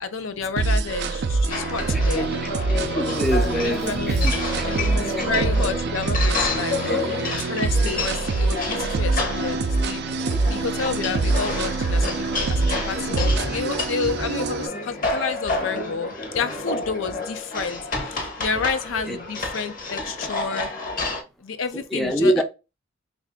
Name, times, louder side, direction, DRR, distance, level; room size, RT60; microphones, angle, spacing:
voice 1, 0.0-2.3 3.5-7.0 7.5-10.0 10.5-20.7 21.0-21.1 21.4-22.4, left 5 dB, 75° left, 0.5 m, -30 dB
sound 1, 0.6-14.7, right 3 dB, 55° right, 0.4 m, -25 dB
sound 2, 1.5-21.2, left 3 dB, 45° left, 0.9 m, -30 dB
voice 2, 1.9-2.3 3.0-4.3 5.2-5.5 6.8-7.3 13.4-13.6 18.5-18.7 19.1-19.2 21.7-22.4, right 1 dB, ahead, 0.5 m, -25 dB
3.3 x 2.5 x 3.5 m
head